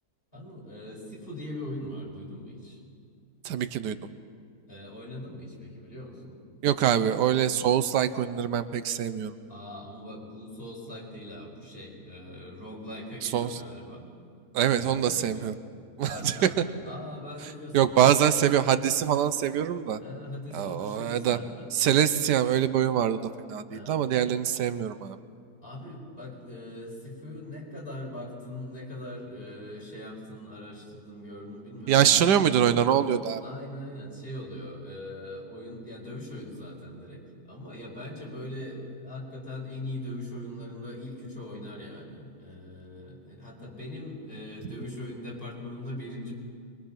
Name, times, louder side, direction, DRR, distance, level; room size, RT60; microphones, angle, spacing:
voice 1, 0.3-2.8 4.7-6.4 9.5-14.1 14.8-15.5 16.0-18.3 20.0-21.7 23.7-24.1 25.6-32.2 33.4-46.3, left 1 dB, 35° left, -2 dB, 5.2 m, -41 dB
voice 2, 3.4-4.0 6.6-9.3 13.2-13.5 14.5-15.5 16.0-16.3 17.7-20.0 20.5-21.4 21.7-23.2 23.5-25.2 31.9-33.4, right 9 dB, 85° right, 12 dB, 1.4 m, -24 dB
24.5 x 23.0 x 5.8 m, 2.2 s
omnidirectional pair, 1.8 m